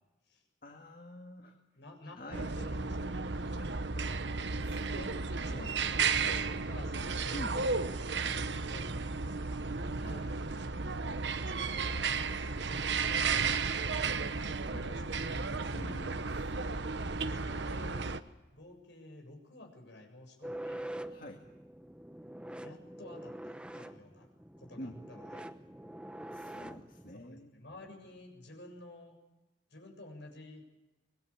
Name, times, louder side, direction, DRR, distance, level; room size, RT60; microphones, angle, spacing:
voice 1, 0.6-1.6 2.2-2.5 4.6-5.7 7.3-7.6 10.0-10.5 15.7-17.2 21.1-21.4 24.8-25.0 26.3-27.5, left 1 dB, 50° left, 3 dB, 2.0 m, -48 dB
voice 2, 1.8-2.2 2.5-4.1 4.9-5.7 6.1-8.0 8.3-9.7 11.4-15.8 17.2-18.2 18.5-20.8 22.6-24.3 24.6-25.5 27.1-29.2 29.7-30.6, left 1 dB, 65° left, 2 dB, 7.5 m, -51 dB
Le Soleal Horns New Zealand, 2.3-18.2, right 4 dB, 65° right, 1.1 m, -33 dB
sound 1, 20.4-27.1, right 1 dB, 5° right, 0.9 m, -45 dB
25.5 x 21.0 x 8.7 m, 1.0 s
head